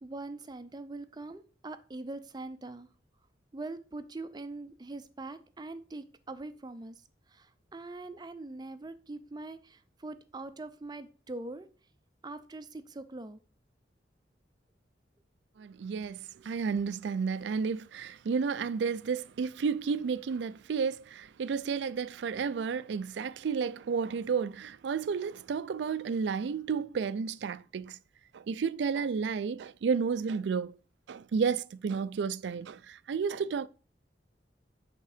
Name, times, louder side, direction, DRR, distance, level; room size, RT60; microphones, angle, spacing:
voice 1, 0.0-2.9 3.5-11.7 12.2-13.4, right 2 dB, 25° right, 0.5 m, -43 dB
voice 2, 15.6-28.0 28.3-30.8 31.1-33.7, right 5 dB, 75° right, 0.4 m, -32 dB
8.2 x 3.7 x 4.9 m
head